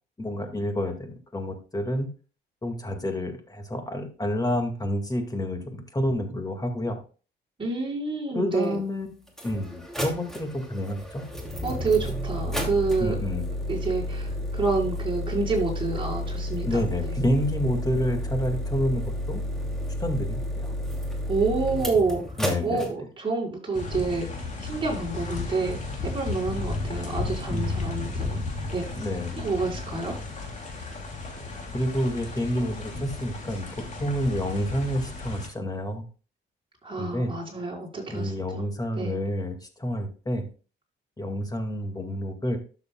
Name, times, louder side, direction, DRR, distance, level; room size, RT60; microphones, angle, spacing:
voice 1, 0.2-2.1 2.6-7.0 8.3-11.2 13.0-13.5 16.6-19.4 20.0-20.7 22.4-22.9 27.5-27.9 29.0-29.3 31.7-33.7 34.0-36.0 37.0-37.3 38.1-40.5 41.2-42.6, equal, 20° left, 5 dB, 2.1 m, -29 dB
voice 2, 7.6-8.8 11.6-13.2 13.7-16.8 21.3-22.2 22.6-24.3 24.7-25.8 26.0-28.4 28.7-28.9 29.4-30.1 36.8-38.6 39.0-39.2, right 3 dB, 25° right, -3 dB, 5.1 m, -28 dB
sound 1, 8.6-8.7 9.3-22.9, left 1 dB, ahead, 2.7 m, -31 dB
sound 2, 23.7-35.5, left 3 dB, 35° left, 3.0 m, -34 dB
12.5 x 7.0 x 2.3 m, 0.36 s
cardioid pair, 90°, 20 cm